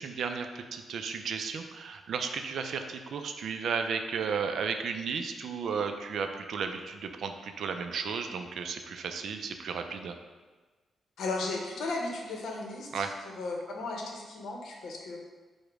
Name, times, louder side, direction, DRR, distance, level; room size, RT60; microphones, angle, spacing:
voice 1, 0.0-10.2 12.9-13.1, right 6 dB, 60° right, 6 dB, 0.3 m, -34 dB
voice 2, 11.2-13.0 13.4-15.2, left 3 dB, 75° left, 0 dB, 0.7 m, -35 dB
4.9 x 2.1 x 4.6 m, 1.3 s
wide cardioid pair, 180°, 0 cm